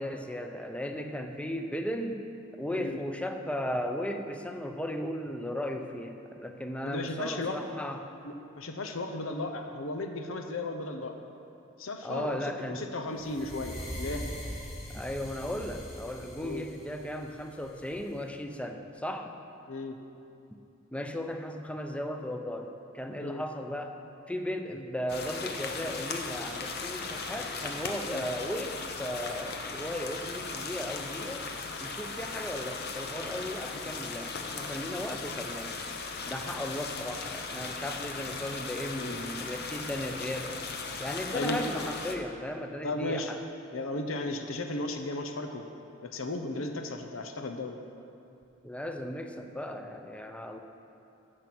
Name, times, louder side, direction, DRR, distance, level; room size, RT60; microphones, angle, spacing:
voice 1, 0.0-2.2 2.6-8.1 12.0-12.8 14.9-19.3 20.9-23.9 24.3-31.5 31.8-35.8 36.2-40.6 41.0-43.4 48.6-50.6, equal, 5° left, 5 dB, 0.6 m, -36 dB
voice 2, 2.7-3.0 6.8-7.6 8.2-11.2 11.8-14.2 16.4-16.6 19.7-20.0 23.2-23.4 28.1-28.2 39.0-39.2 41.3-41.6 42.8-43.3 43.7-45.6 46.0-47.8, left 2 dB, 85° left, 5 dB, 0.8 m, -35 dB
sound 1, 13.2-18.2, equal, 30° left, 2.4 m, -42 dB
sound 2, 25.1-42.2, left 4 dB, 55° left, 0.9 m, -37 dB
14.0 x 6.2 x 6.0 m, 2.7 s
head